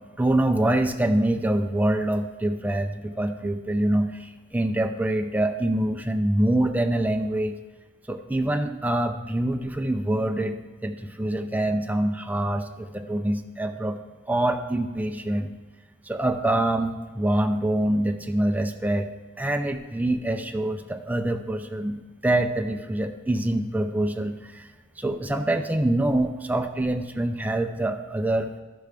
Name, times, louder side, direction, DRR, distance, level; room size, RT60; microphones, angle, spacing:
voice 1, 0.2-7.6 8.1-14.0 14.3-15.5 16.0-19.1 19.4-24.7 25.0-28.5, right 1 dB, 10° right, 5 dB, 0.5 m, -25 dB
13.0 x 6.1 x 3.5 m, 1.4 s
head